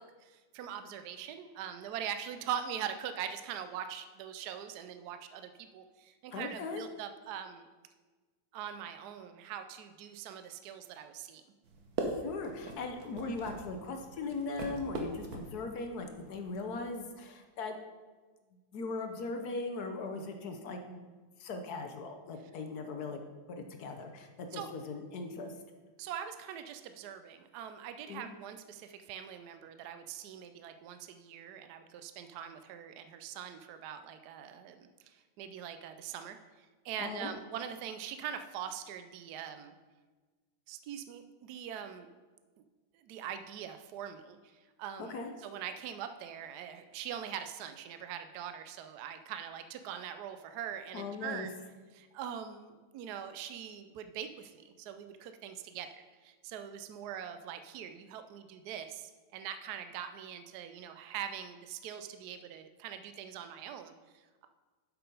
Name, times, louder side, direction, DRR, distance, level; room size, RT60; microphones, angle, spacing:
voice 1, 0.0-7.7 8.5-11.4 24.5-24.7 26.0-39.7 40.7-42.1 42.9-51.5 51.9-64.5, right 9 dB, 75° right, 8 dB, 0.9 m, -42 dB
voice 2, 6.3-6.8 12.2-17.8 18.7-21.0 21.4-23.2 23.5-25.5 28.1-28.3 37.0-37.3 45.0-45.3 50.9-51.5, left 3 dB, 60° left, 4 dB, 1.1 m, -39 dB
sound 1, 11.6-16.8, right 2 dB, 55° right, 1.3 m, -41 dB
8.1 x 6.1 x 5.3 m, 1.3 s
omnidirectional pair, 2.3 m